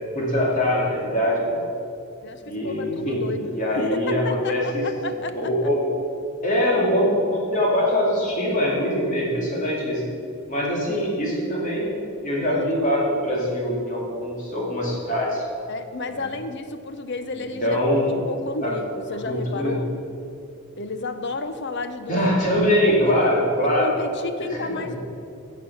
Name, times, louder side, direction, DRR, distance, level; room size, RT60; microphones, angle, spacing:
voice 1, 0.1-1.6 2.5-3.2 3.5-4.8 5.3-5.8 6.4-10.0 10.5-12.0 12.2-15.4 17.4-18.1 18.6-18.7 19.2-19.8 22.1-23.9 24.5-25.0, equal, 35° left, -4 dB, 2.7 m, -23 dB
voice 2, 2.2-5.6 12.5-12.8 15.7-19.9 20.8-22.3 22.8-23.1 23.8-25.0, left 3 dB, 50° left, 9 dB, 0.7 m, -32 dB
16.5 x 6.0 x 5.8 m, 2.7 s
head